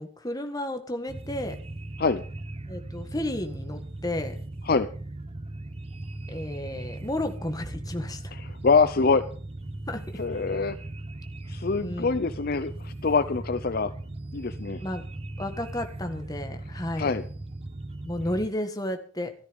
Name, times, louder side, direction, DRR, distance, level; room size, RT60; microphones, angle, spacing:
voice 1, 0.0-1.6 2.7-4.4 6.3-8.4 9.9-10.0 11.8-12.2 14.8-15.0 15.4-17.1 18.0-19.3, left 1 dB, 20° left, 6 dB, 1.7 m, -32 dB
sound 1, 1.1-18.5, right 2 dB, 30° right, 0.8 m, -38 dB
voice 2, 8.6-9.2 10.2-10.8 11.5-13.9 14.3-14.8 17.0-17.2, left 4 dB, 45° left, 12 dB, 0.6 m, -24 dB
14.0 x 13.0 x 5.3 m, 0.44 s
head